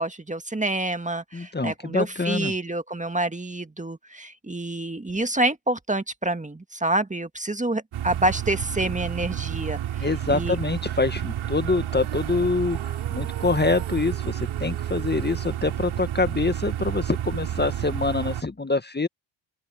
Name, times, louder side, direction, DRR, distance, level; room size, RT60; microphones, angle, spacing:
voice 1, 0.0-10.6, right 2 dB, 15° right, 1.9 m, -27 dB
voice 2, 1.3-2.5 10.0-19.1, left 3 dB, 20° left, 1.7 m, -25 dB
sound 1, 7.9-18.4, right 11 dB, 70° right, 4.3 m, -30 dB
Female singing, 11.9-18.2, right 20 dB, 90° right, 2.7 m, -45 dB
open air
hypercardioid pair, 50°, 48 cm